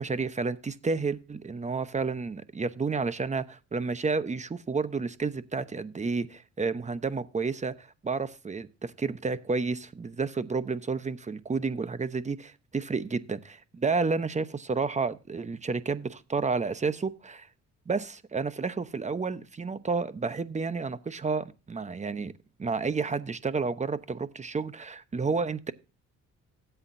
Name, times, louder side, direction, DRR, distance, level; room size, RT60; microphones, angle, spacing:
voice 1, 0.0-17.5 17.9-22.3 22.6-25.7, right 4 dB, 25° right, 0.9 m, -31 dB
14.0 x 8.1 x 2.6 m
cardioid pair, 90°, 30 cm